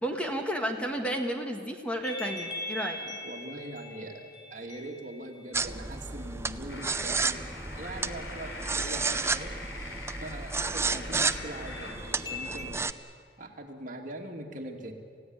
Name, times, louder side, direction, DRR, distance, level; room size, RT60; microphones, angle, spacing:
voice 1, 0.0-3.2, equal, 5° left, 3 dB, 1.6 m, -32 dB
sound 1, 2.0-6.6 11.2-12.6, left 2 dB, 25° left, 2.6 m, -42 dB
voice 2, 3.2-7.5 7.8-9.5 10.2-12.8 13.4-14.9, right 1 dB, 45° right, 2 dB, 2.7 m, -42 dB
sound 2, 5.5-12.9, right 4 dB, 15° right, 0.6 m, -32 dB
sound 3, 6.7-11.9, left 3 dB, 80° left, 3.6 m, -43 dB
28.0 x 16.0 x 9.7 m, 2.2 s
head